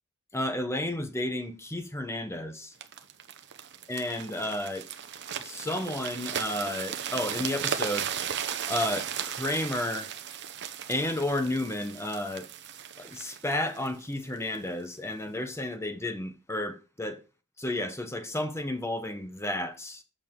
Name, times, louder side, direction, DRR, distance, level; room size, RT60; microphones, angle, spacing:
voice 1, 0.3-2.7 3.9-4.9 5.4-8.1 8.7-10.1 10.9-12.5 13.0-17.2 17.6-20.0, left 1 dB, 15° left, 1.1 m, -32 dB
sound 1, 2.8-14.7 15.3-15.4, right 8 dB, 55° right, 0.8 m, -36 dB
7.6 x 6.5 x 3.7 m
head